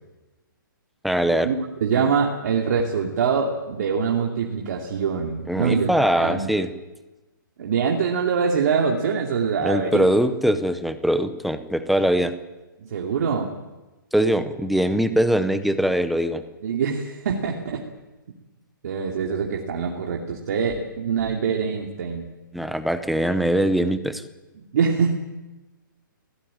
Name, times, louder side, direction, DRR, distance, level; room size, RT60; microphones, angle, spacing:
voice 1, 1.0-1.5 5.5-6.7 9.6-12.3 14.1-16.4 22.5-24.2, equal, ahead, 10 dB, 0.7 m, -22 dB
voice 2, 1.8-5.9 6.2-6.5 7.6-10.1 12.8-13.5 16.6-17.8 18.8-22.3 24.7-25.1, right 6 dB, 50° right, 1 dB, 2.6 m, -24 dB
20.5 x 17.5 x 9.1 m, 1.1 s
hypercardioid pair, 165°, 11 cm